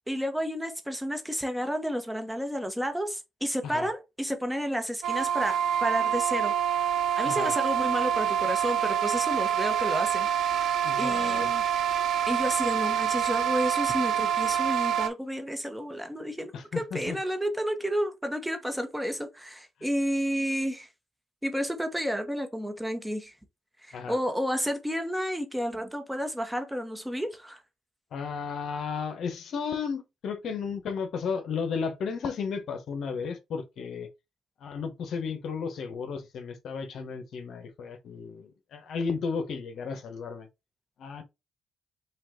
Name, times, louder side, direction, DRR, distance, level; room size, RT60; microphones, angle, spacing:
voice 1, 0.1-6.9 7.2-10.7 11.0-11.6 12.3-20.9 21.4-23.3 23.8-27.6, equal, 5° right, 1.0 m, -31 dB
sound 1, 5.0-15.1, right 9 dB, 75° right, 0.6 m, -26 dB
voice 2, 10.8-11.5 16.5-17.2 23.9-24.2 28.1-34.1 34.6-40.5 41.0-41.2, left 5 dB, 70° left, 1.1 m, -34 dB
5.6 x 2.5 x 3.7 m
cardioid pair, 90°, 0 cm